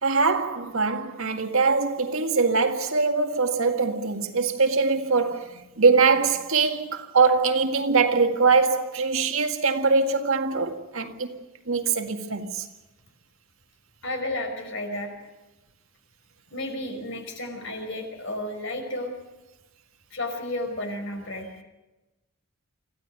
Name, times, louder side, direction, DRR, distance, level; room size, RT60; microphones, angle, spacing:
voice 1, 0.0-11.4 11.7-12.7, right 4 dB, 70° right, 1.9 m, -22 dB
voice 2, 14.0-15.1 16.5-19.1 20.1-21.5, left 1 dB, 55° left, 5.2 m, -32 dB
26.0 x 15.5 x 9.2 m
head